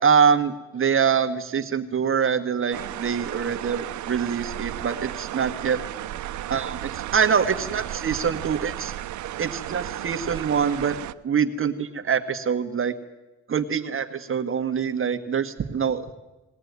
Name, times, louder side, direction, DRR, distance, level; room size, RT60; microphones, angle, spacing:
voice 1, 0.0-5.8 6.5-8.9 9.4-11.0 11.2-13.0 13.5-16.1, right 7 dB, 45° right, 8 dB, 1.7 m, -24 dB
sound 1, 2.7-11.1, right 13 dB, 70° right, 0.8 m, -34 dB
21.0 x 17.5 x 9.6 m, 1.0 s
cardioid pair, 90°, 30 cm